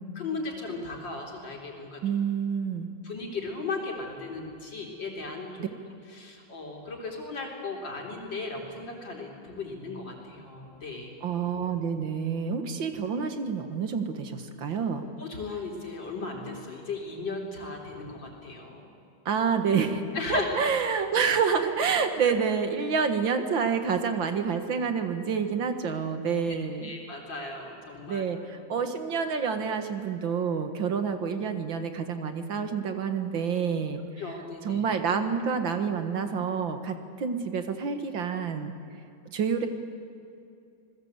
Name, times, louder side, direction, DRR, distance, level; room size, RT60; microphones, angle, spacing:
voice 1, 0.2-2.0 3.0-5.7 6.1-11.1 15.2-18.9 20.1-20.7 26.5-26.6 26.8-28.2 34.2-34.8, left 3 dB, 75° left, 0 dB, 4.5 m, -36 dB
voice 2, 2.0-2.9 5.6-5.7 11.2-15.1 19.3-26.9 28.1-34.0 34.6-38.7 39.3-39.7, right 6 dB, 85° right, 7 dB, 2.4 m, -28 dB
28.0 x 20.0 x 8.2 m, 2.6 s
omnidirectional pair, 2.0 m